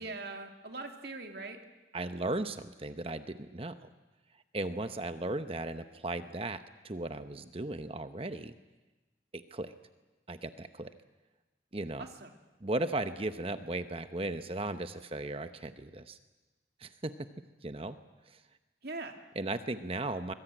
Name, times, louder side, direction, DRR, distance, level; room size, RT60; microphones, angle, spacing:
voice 1, 0.0-1.6 12.0-12.3 18.8-19.2, right 3 dB, 55° right, 4 dB, 2.7 m, -41 dB
voice 2, 1.9-3.8 4.5-8.5 9.3-9.7 10.3-10.9 11.7-12.0 12.6-16.2 16.8-17.3 17.6-18.0 18.3-18.4 19.4-20.3, right 2 dB, 30° right, 10 dB, 0.9 m, -36 dB
24.0 x 22.0 x 9.1 m, 1.1 s
head